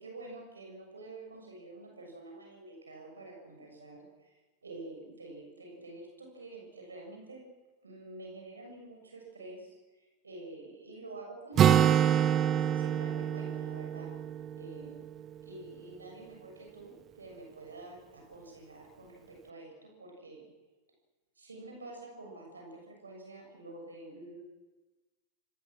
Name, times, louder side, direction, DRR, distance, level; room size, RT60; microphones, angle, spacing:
voice 1, 0.0-7.4 7.8-11.9 12.7-14.1 14.6-15.1 15.4-20.4 21.4-24.4, right 2 dB, 75° right, 1 dB, 7.0 m, -48 dB
Acoustic guitar, 11.6-15.3, right 9 dB, 30° right, 0.9 m, -26 dB
26.5 x 21.5 x 6.3 m, 1.1 s
figure-of-eight pair, 90°, 0 cm